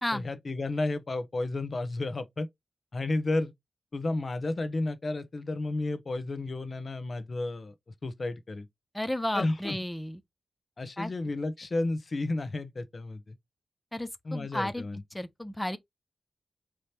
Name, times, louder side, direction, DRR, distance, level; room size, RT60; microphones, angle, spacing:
voice 1, 0.1-2.5 2.9-3.5 3.9-7.7 8.0-8.7 9.3-9.8 10.8-13.4 14.2-15.0, left 2 dB, 45° left, 0.9 m, -32 dB
voice 2, 8.9-10.2 11.0-11.1 13.9-14.8 15.1-15.8, left 1 dB, 10° left, 0.6 m, -32 dB
4.9 x 2.9 x 3.2 m
wide cardioid pair, 95°, 0 cm